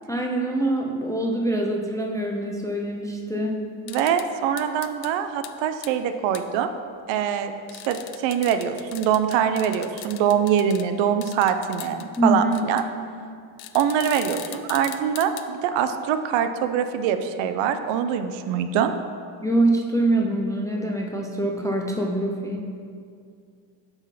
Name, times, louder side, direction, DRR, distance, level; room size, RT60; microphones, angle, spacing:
voice 1, 0.0-3.7 12.2-12.6 19.4-22.6, right 1 dB, 10° left, 0 dB, 0.3 m, -24 dB
sound 1, 3.9-4.3 4.6-5.1 5.4-5.5 5.8-5.9 6.3-6.4 7.7-10.9 11.2-12.2 12.5-12.8 13.6-15.5, left 13 dB, 75° left, 0.6 m, -39 dB
voice 2, 3.9-6.7 7.1-12.8 13.7-18.9, right 8 dB, 70° right, 9 dB, 0.7 m, -24 dB
7.9 x 4.0 x 5.7 m, 2.3 s
cardioid pair, 120°, 48 cm